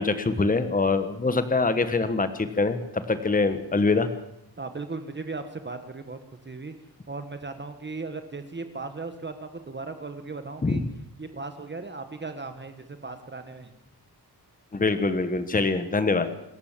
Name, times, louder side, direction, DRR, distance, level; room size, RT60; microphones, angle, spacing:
voice 1, 0.0-4.1 10.6-10.8 14.7-16.3, left 3 dB, 20° left, 10 dB, 1.3 m, -24 dB
voice 2, 4.6-6.2 6.4-6.7 7.1-10.8 11.2-13.7, right 3 dB, 30° right, 8 dB, 1.4 m, -37 dB
27.0 x 14.0 x 7.4 m, 0.78 s
wide cardioid pair, 175°, 39 cm